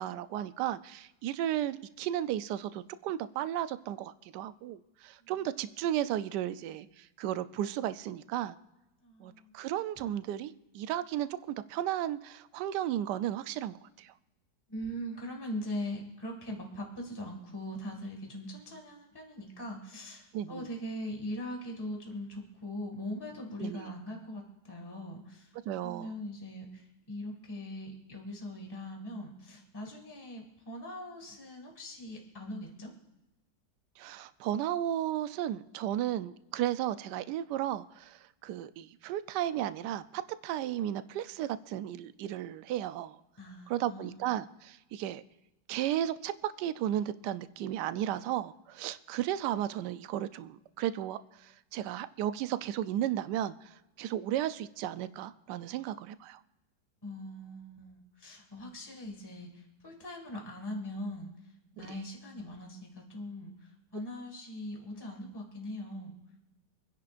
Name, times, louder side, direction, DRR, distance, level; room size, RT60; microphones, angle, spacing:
voice 1, 0.0-8.6 9.2-14.1 20.3-20.7 23.6-23.8 25.7-26.1 34.0-43.2 43.7-45.2 45.7-56.4 61.8-61.9, right 12 dB, 75° right, 13 dB, 1.2 m, -34 dB
voice 2, 9.0-9.5 10.0-10.2 14.7-25.5 25.8-32.9 43.4-44.3 57.0-61.3 61.8-66.2, left 1 dB, 15° left, 1 dB, 1.9 m, -41 dB
26.5 x 10.5 x 2.5 m, 0.97 s
omnidirectional pair, 1.9 m